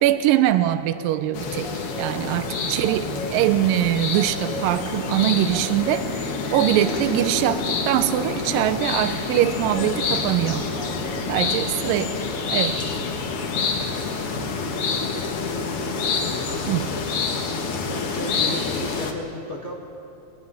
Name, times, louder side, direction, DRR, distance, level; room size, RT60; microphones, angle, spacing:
voice 1, 0.0-1.7 2.0-10.7 11.3-12.1 12.5-12.8 16.7-16.8, right 13 dB, 80° right, 11 dB, 2.3 m, -22 dB
sound 1, 1.3-19.1, left 4 dB, 55° left, 1.7 m, -27 dB
Traffic noise roadway noise / Engine, 5.5-11.9, left 1 dB, 5° left, 0.8 m, -40 dB
voice 2, 11.3-11.8 13.7-19.7, left 1 dB, 85° left, -1 dB, 0.6 m, -37 dB
20.5 x 15.5 x 9.8 m, 2.8 s
omnidirectional pair, 4.2 m